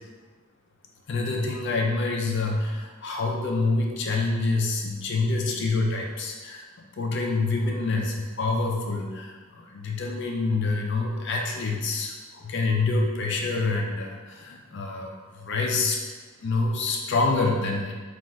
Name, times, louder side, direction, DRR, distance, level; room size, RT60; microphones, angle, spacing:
voice 1, 1.1-6.7 6.9-16.0 16.4-17.9, left 3 dB, 55° left, 1 dB, 0.4 m, -26 dB
4.1 x 2.5 x 4.4 m, 1.4 s
head